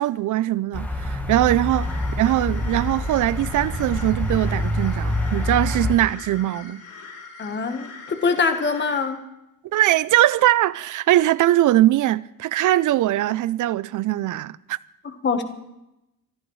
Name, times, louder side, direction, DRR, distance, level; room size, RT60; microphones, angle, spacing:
voice 1, 0.0-1.9 2.2-6.8 9.7-14.8, right 14 dB, 60° right, 0.5 m, -21 dB
sound 1, 0.7-5.9, left 1 dB, 5° left, 1.2 m, -26 dB
sound 2, 1.7-9.0, left 4 dB, 60° left, 7.5 m, -42 dB
voice 2, 7.4-9.2 15.0-15.4, left 4 dB, 30° left, 1.2 m, -24 dB
24.0 x 14.0 x 3.1 m
cardioid pair, 170°, 36 cm